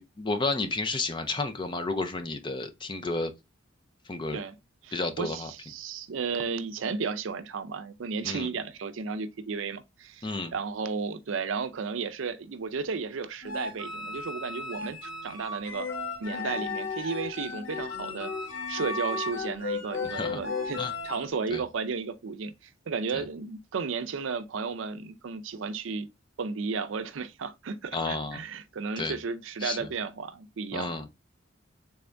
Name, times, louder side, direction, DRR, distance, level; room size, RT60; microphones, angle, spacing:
voice 1, 0.0-3.3 4.1-4.4 4.9-5.5 8.2-8.5 10.2-10.5 20.1-20.4 20.8-20.9 21.5-21.6 23.1-23.2 27.9-28.4 29.0-29.1 29.6-29.8 30.7-31.1, left 3 dB, 25° left, 0.5 m, -31 dB
voice 2, 4.8-15.9 16.2-18.3 18.7-22.5 22.9-26.1 26.4-30.9, right 5 dB, 80° right, 0.5 m, -34 dB
sound 1, 13.4-21.3, left 4 dB, 75° left, 1.1 m, -35 dB
3.5 x 3.3 x 2.5 m
head